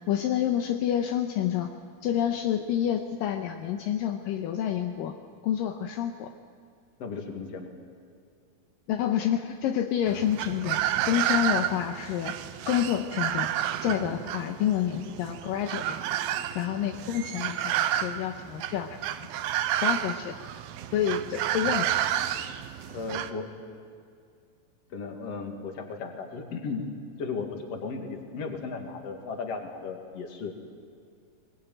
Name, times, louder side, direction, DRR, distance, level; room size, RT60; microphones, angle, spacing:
voice 1, 0.1-1.7 2.0-5.1 5.4-6.3 8.9-10.8 11.0-12.4 12.7-13.5 13.8-16.0 16.6-19.0 19.8-20.3 20.9-21.9, left 10 dB, 75° left, 4 dB, 2.5 m, -28 dB
voice 2, 7.0-7.7 22.9-23.5 24.9-26.8 27.2-30.5, left 4 dB, 45° left, 3 dB, 3.0 m, -35 dB
sound 1, 10.1-23.3, right 11 dB, 85° right, 2.7 m, -30 dB
21.0 x 21.0 x 9.2 m, 2.2 s
omnidirectional pair, 4.2 m